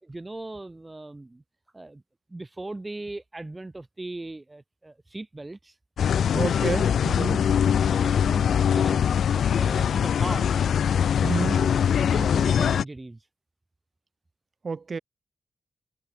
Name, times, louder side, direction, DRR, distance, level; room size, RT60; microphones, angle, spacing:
voice 1, 0.0-1.4 1.7-2.0 2.3-5.8 6.5-6.6 7.2-10.5 11.2-11.7 12.0-13.3, right 2 dB, 20° right, 6.0 m, -38 dB
sound 1, 6.0-12.8, left 8 dB, 90° left, 1.1 m, -22 dB
voice 2, 6.3-7.5 11.2-11.6 14.6-15.0, right 4 dB, 45° right, 7.3 m, -29 dB
wide cardioid pair, 115°, 0 cm